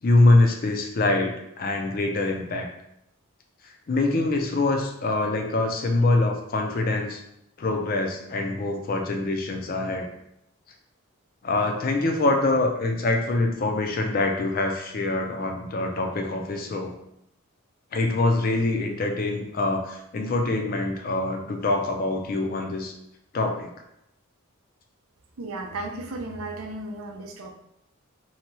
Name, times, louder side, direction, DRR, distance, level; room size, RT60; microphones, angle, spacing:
voice 1, 0.0-2.7 3.9-7.2 7.6-10.1 11.4-17.0 17.9-22.9 23.3-23.7, left 2 dB, 40° left, 3 dB, 0.4 m, -24 dB
voice 2, 25.4-27.5, right 2 dB, 85° right, 2 dB, 0.5 m, -34 dB
2.7 x 2.2 x 2.9 m, 0.79 s
head